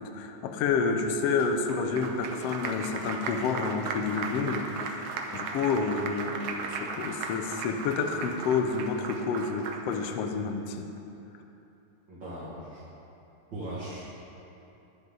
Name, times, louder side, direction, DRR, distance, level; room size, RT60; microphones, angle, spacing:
voice 1, 0.0-10.9, left 5 dB, 75° left, 5 dB, 1.5 m, -29 dB
Applause, 1.4-10.1, right 4 dB, 70° right, 1.8 m, -37 dB
voice 2, 12.1-12.8 13.5-14.0, right 1 dB, 40° right, -8 dB, 2.3 m, -38 dB
21.0 x 8.0 x 3.9 m, 2.9 s
omnidirectional pair, 3.7 m